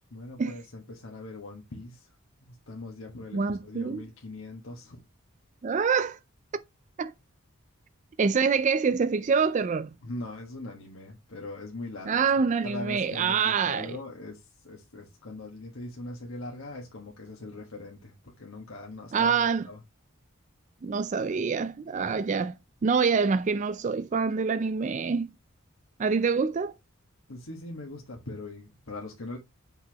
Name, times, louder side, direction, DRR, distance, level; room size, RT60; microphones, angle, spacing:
voice 1, 0.1-2.1 2.4-5.0 10.0-12.3 12.6-19.8 27.3-29.4, left 2 dB, 70° left, 1.5 m, -41 dB
voice 2, 3.3-4.0 5.6-6.2 7.0-7.1 8.2-9.9 12.1-13.9 19.1-19.6 20.8-22.5 22.8-25.3 26.0-26.7, right 5 dB, 35° right, 0.3 m, -26 dB
8.1 x 5.6 x 2.9 m
head